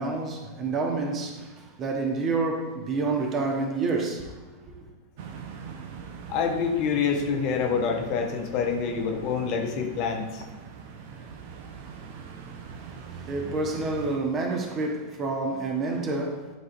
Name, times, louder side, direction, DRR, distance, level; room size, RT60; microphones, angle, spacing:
voice 1, 0.0-4.4 4.7-4.8 12.8-12.9 13.2-16.5, right 3 dB, 30° right, 1.1 m, -28 dB
sound 1, 5.2-14.2, right 6 dB, 50° right, 0.6 m, -42 dB
voice 2, 6.3-10.4, left 6 dB, 40° left, 0.8 m, -26 dB
11.5 x 3.9 x 2.5 m
figure-of-eight pair, 90°, 0 cm